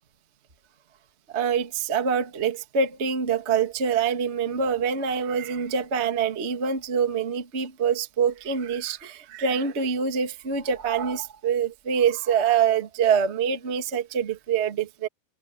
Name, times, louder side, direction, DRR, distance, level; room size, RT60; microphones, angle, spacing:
voice 1, 1.3-15.1, right 6 dB, 30° right, 1.2 m, -25 dB
omnidirectional pair, 4.7 m